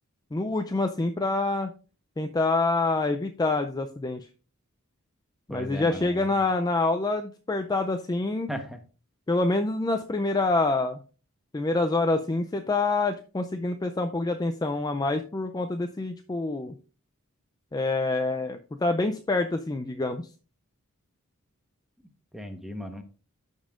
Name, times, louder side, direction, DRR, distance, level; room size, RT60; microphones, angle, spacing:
voice 1, 0.3-1.7 2.2-4.3 5.5-8.5 9.3-11.0 11.5-16.8 17.7-20.2, left 2 dB, 20° left, 6 dB, 0.4 m, -26 dB
voice 2, 5.5-6.2 8.5-8.8 22.3-23.0, equal, ahead, 6 dB, 1.1 m, -36 dB
14.0 x 5.4 x 2.4 m, 0.36 s
head